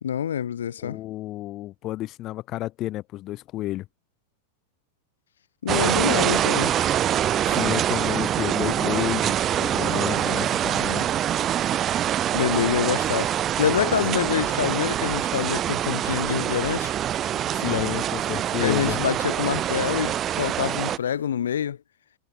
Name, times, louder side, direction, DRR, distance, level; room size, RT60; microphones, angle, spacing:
voice 1, 0.0-1.0 5.6-6.7 12.3-16.9 17.6-17.9 18.6-21.8, left 9 dB, 65° left, 2.1 m, -26 dB
voice 2, 0.8-3.9 7.5-11.1 17.5-19.0, left 15 dB, 35° left, 1.7 m, -31 dB
sound 1, 5.7-21.0, right 11 dB, 30° right, 0.3 m, -25 dB
sound 2, 14.9-21.3, right 5 dB, 75° right, 7.0 m, -54 dB
figure-of-eight pair, 90°, 0 cm